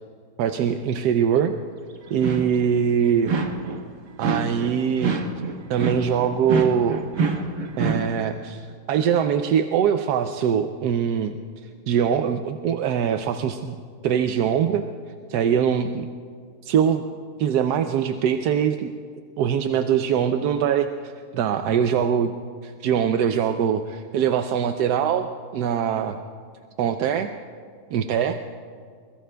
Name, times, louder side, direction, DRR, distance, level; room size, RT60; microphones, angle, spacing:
voice 1, 0.4-1.6 2.1-3.3 4.2-5.2 5.7-7.0 7.8-11.3 11.6-13.8 14.0-14.8 15.3-16.1 16.6-17.0 17.4-18.9 19.4-22.3 22.6-26.2 26.8-27.3 27.9-28.4, right 8 dB, 85° right, 7 dB, 1.2 m, -22 dB
sound 1, 2.1-2.7 3.3-3.9 4.2-8.1, right 4 dB, 55° right, 1.4 m, -27 dB
23.5 x 21.5 x 2.3 m, 2.1 s
omnidirectional pair, 1.7 m